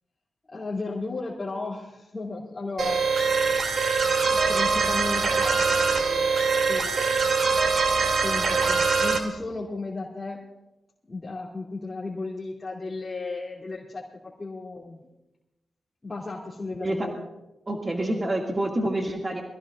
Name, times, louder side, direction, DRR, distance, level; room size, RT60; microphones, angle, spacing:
voice 1, 0.5-3.1 4.3-7.2 7.9-10.4 11.1-14.1 14.4-15.0 16.0-17.2, left 3 dB, 30° left, -5 dB, 2.8 m, -35 dB
sound 1, 2.8-9.2, right 4 dB, 70° right, 2.6 m, -23 dB
voice 2, 16.8-17.1 17.7-19.4, right 1 dB, 35° right, 0 dB, 2.2 m, -27 dB
24.5 x 16.0 x 2.5 m, 0.98 s
cardioid pair, 60°, 0 cm